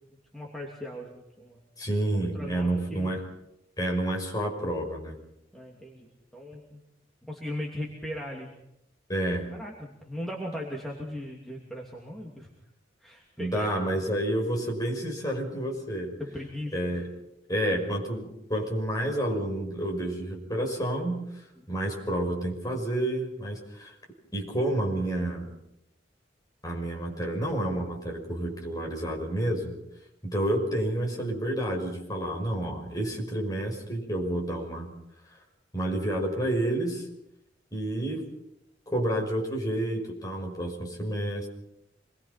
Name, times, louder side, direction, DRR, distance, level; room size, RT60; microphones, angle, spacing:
voice 1, 0.1-1.6 2.3-3.1 5.5-6.8 7.2-8.5 9.5-12.5 13.0-14.0 16.2-16.7 21.6-21.7, left 1 dB, ahead, -2 dB, 2.8 m, -38 dB
voice 2, 1.8-3.2 3.8-5.2 9.1-9.5 13.4-16.2 16.7-17.1 17.5-23.9 24.3-25.5 26.6-29.8 30.2-34.9 35.7-37.1 37.7-38.3 38.9-41.5, right 1 dB, 20° left, 0 dB, 5.8 m, -29 dB
26.5 x 21.5 x 5.9 m, 0.82 s
head